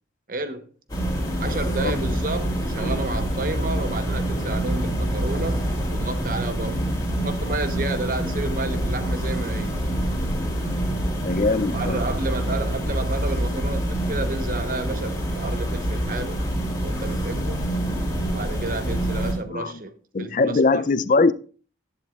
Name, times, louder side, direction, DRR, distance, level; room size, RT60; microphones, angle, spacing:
voice 1, 0.3-0.7 1.4-6.9 7.2-9.8 11.7-16.4 16.8-17.6 18.3-20.9, right 2 dB, 45° right, 0.9 m, -31 dB
sound 1, 0.9-19.3, right 1 dB, 20° left, 2.8 m, -26 dB
voice 2, 1.3-1.9 11.2-12.0 19.4-19.8 20.1-21.3, left 3 dB, 40° left, 0.4 m, -22 dB
12.0 x 10.5 x 2.4 m
head